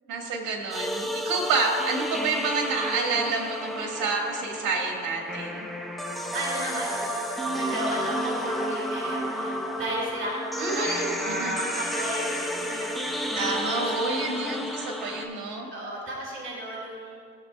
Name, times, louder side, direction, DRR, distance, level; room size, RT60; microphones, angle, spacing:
voice 1, 0.1-5.7 10.6-11.6 13.3-15.7, right 3 dB, 80° right, 0 dB, 1.7 m, -29 dB
sound 1, 0.7-15.2, equal, ahead, 0.9 m, -31 dB
voice 2, 6.3-10.4 10.7-13.9 15.7-17.2, right 1 dB, 40° right, -3 dB, 2.1 m, -34 dB
16.0 x 7.3 x 2.3 m, 2.1 s
cardioid pair, 90°, 30 cm